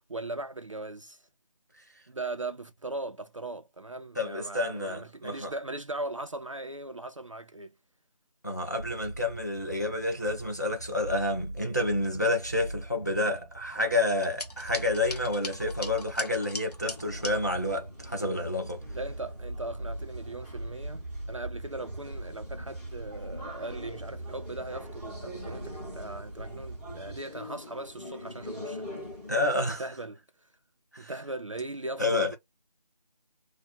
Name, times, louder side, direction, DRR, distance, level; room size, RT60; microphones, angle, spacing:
voice 1, 0.1-1.2 2.1-7.7 18.9-28.9 29.4-30.2 31.0-32.4, right 2 dB, 50° right, 0.4 m, -39 dB
voice 2, 4.2-5.5 8.4-18.8 29.3-29.8 30.9-31.1 32.0-32.4, left 2 dB, 25° left, 0.5 m, -29 dB
sound 1, 8.8-27.2, right 1 dB, 90° right, 0.8 m, -42 dB
baldosa y vaso, 14.1-17.3, left 2 dB, 70° left, 1.1 m, -40 dB
sound 2, 16.9-29.3, left 1 dB, 10° left, 1.0 m, -45 dB
2.8 x 2.1 x 3.6 m
figure-of-eight pair, 175°, 21 cm